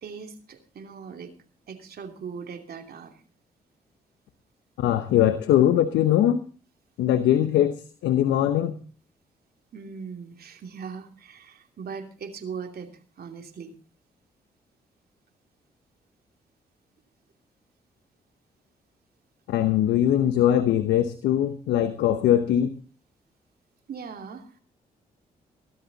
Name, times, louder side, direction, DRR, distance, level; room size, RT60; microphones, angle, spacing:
voice 1, 0.0-1.3 1.7-3.2 9.7-13.7 23.9-24.6, right 6 dB, 60° right, 4 dB, 2.9 m, -39 dB
voice 2, 4.8-6.4 7.0-7.7 8.0-8.7 19.5-22.7, left 11 dB, 80° left, 11 dB, 1.0 m, -21 dB
17.0 x 13.0 x 4.1 m, 0.38 s
supercardioid pair, 50°, 18 cm